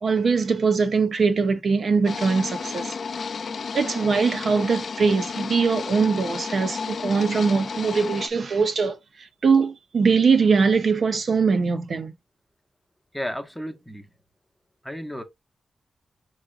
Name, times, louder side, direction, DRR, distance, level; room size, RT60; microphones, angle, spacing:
voice 1, 0.0-3.0 3.7-12.1, right 5 dB, 50° right, 0.7 m, -22 dB
sound 1, 2.0-8.3, left 5 dB, 55° left, 0.4 m, -32 dB
voice 2, 13.1-14.1 14.8-15.2, equal, ahead, 0.7 m, -33 dB
5.8 x 3.2 x 2.4 m
wide cardioid pair, 175°, 0 cm